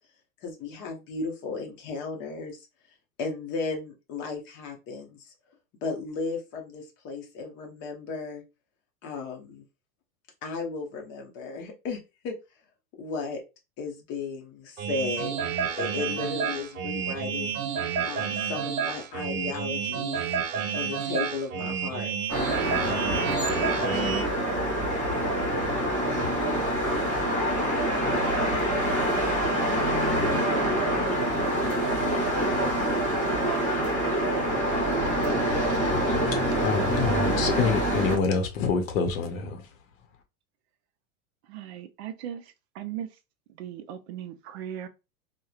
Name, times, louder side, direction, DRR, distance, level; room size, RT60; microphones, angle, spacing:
voice 1, 0.4-2.7 3.2-5.3 5.8-8.4 9.0-9.6 10.4-12.4 13.0-13.4 13.8-15.3 15.8-17.6 18.0-20.2 20.7-22.1 23.6-24.4, left 4 dB, 30° left, 0.6 m, -35 dB
sound 1, 14.8-24.2, right 7 dB, 85° right, 0.7 m, -30 dB
sound 2, 22.3-38.2, right 1 dB, 5° left, 1.1 m, -26 dB
voice 2, 35.7-39.7, left 5 dB, 70° left, 0.7 m, -28 dB
voice 3, 41.5-42.4 42.8-43.1 43.6-44.9, right 10 dB, 55° right, 0.5 m, -37 dB
2.9 x 2.1 x 2.3 m
supercardioid pair, 150°, 42 cm